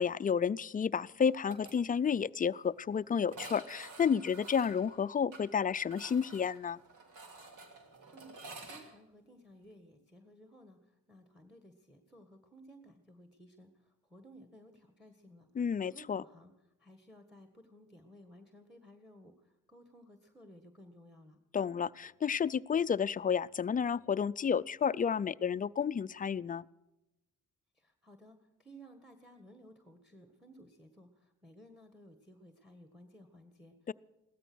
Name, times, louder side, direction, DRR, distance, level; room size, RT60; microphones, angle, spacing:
voice 1, 0.0-6.8 15.6-16.2 21.5-26.7 33.9-34.0, left 7 dB, 25° left, 17 dB, 0.4 m, -31 dB
sound 1, 1.2-1.7 2.0-2.1 2.4-2.5 3.3-8.8, right 3 dB, 80° right, 2.9 m, -50 dB
voice 2, 8.1-15.5 15.8-16.5 16.8-21.4 27.7-33.9, equal, ahead, 7 dB, 1.7 m, -57 dB
16.5 x 13.5 x 6.2 m, 1.0 s
cardioid pair, 70°, 31 cm